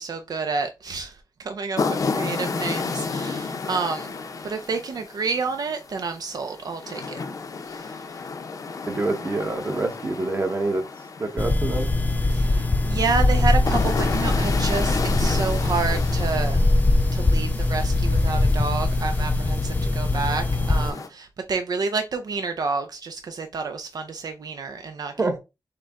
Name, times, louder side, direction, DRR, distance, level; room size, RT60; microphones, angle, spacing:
voice 1, 0.0-4.2 4.4-7.2 7.6-8.2 12.3-16.6 17.1-25.1, right 4 dB, 65° right, 0.5 m, -29 dB
sound 1, 1.8-21.1, left 4 dB, 55° left, 0.6 m, -32 dB
voice 2, 8.9-10.8 11.2-11.9 25.2-25.4, right 2 dB, 35° right, 1.0 m, -26 dB
sound 2, 11.4-20.9, left 2 dB, 25° left, 0.3 m, -22 dB
6.6 x 2.2 x 3.6 m
wide cardioid pair, 150°, 7 cm